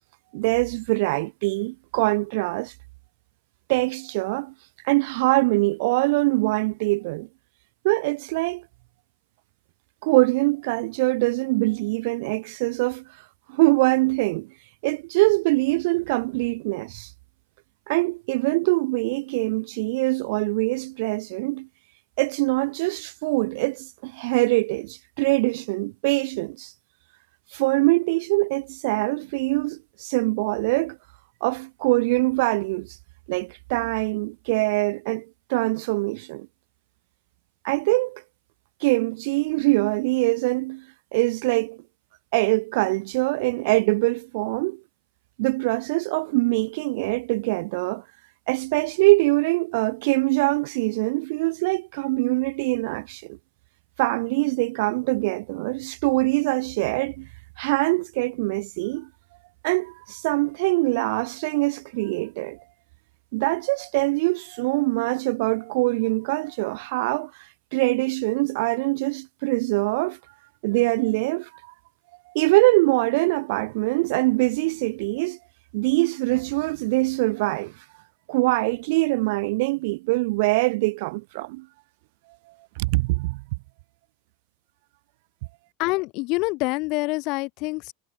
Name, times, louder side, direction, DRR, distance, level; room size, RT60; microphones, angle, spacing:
voice 1, 0.3-2.7 3.7-4.5 4.8-7.3 7.8-8.6 10.0-13.0 13.5-14.5 14.8-17.1 17.9-21.7 22.2-26.7 27.5-31.0 31.4-32.9 33.3-36.5 37.6-38.2 38.8-40.8 41.1-41.8 42.3-44.8 45.4-48.0 48.5-53.4 54.0-57.3 57.6-59.1 59.6-62.6 63.3-67.3 67.7-70.2 70.6-71.5 72.3-75.4 75.7-77.7 78.3-81.7 82.8-83.4, right 24 dB, 65° right, 1.5 m, -23 dB
voice 2, 85.8-87.9, left 25 dB, 55° left, 1.4 m, -26 dB
hypercardioid pair, 110°, 0 cm